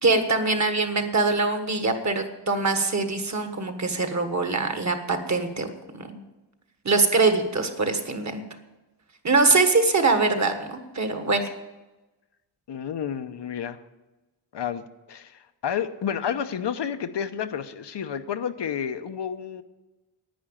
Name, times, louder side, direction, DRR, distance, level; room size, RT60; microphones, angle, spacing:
voice 1, 0.0-5.7 5.9-6.2 6.8-8.4 9.2-11.4, right 3 dB, 40° right, 7 dB, 1.5 m, -23 dB
voice 2, 12.7-13.8 14.5-19.6, left 8 dB, 75° left, 9 dB, 0.9 m, -30 dB
10.5 x 9.5 x 8.9 m, 1.1 s
wide cardioid pair, 150°, 42 cm